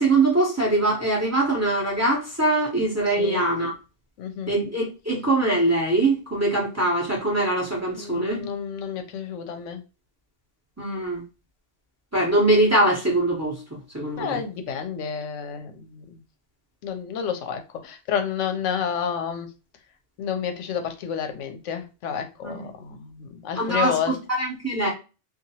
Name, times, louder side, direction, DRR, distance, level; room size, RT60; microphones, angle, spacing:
voice 1, 0.0-3.7 4.5-8.5 10.8-11.2 12.1-14.4 22.4-22.7 23.6-24.9, right 2 dB, 15° right, -4 dB, 0.7 m, -23 dB
voice 2, 3.1-3.4 4.2-4.5 7.9-9.8 14.2-16.2 16.8-19.5 20.2-24.1, left 7 dB, 80° left, 6 dB, 0.9 m, -30 dB
2.8 x 2.4 x 2.7 m, 0.31 s
omnidirectional pair, 1.3 m